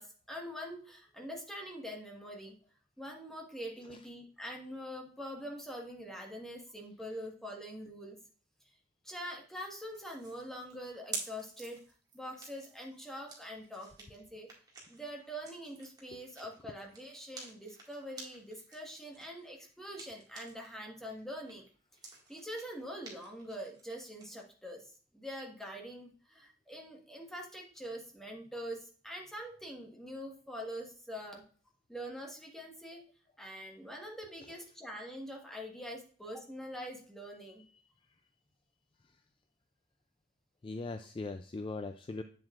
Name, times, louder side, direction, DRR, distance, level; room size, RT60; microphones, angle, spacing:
voice 1, 0.0-2.5 3.0-8.2 8.6-8.7 9.0-11.8 12.1-14.5 14.9-21.6 22.3-31.4 31.9-33.0 33.4-37.6, equal, ahead, 0 dB, 1.4 m, -44 dB
sound 1, 9.9-20.7 21.1-24.3, right 4 dB, 20° right, 2.0 m, -49 dB
voice 2, 40.6-42.2, left 3 dB, 25° left, 8 dB, 0.3 m, -40 dB
8.0 x 7.4 x 2.4 m, 0.42 s
head